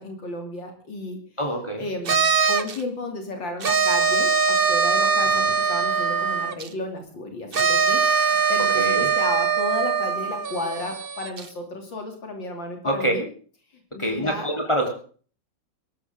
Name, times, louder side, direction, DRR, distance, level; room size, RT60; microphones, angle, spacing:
voice 1, 0.0-1.2 1.8-2.2 2.5-13.3 13.9-14.5, left 2 dB, 70° left, 3 dB, 3.5 m, -33 dB
voice 2, 1.4-1.8 5.0-5.5 8.7-9.1 12.8-13.1 14.0-15.0, right 1 dB, 15° left, 2 dB, 3.7 m, -26 dB
sound 1, 2.0-2.8 3.6-6.7 7.5-11.4, right 5 dB, 40° right, 0.9 m, -22 dB
23.5 x 13.0 x 3.7 m, 0.43 s
omnidirectional pair, 2.1 m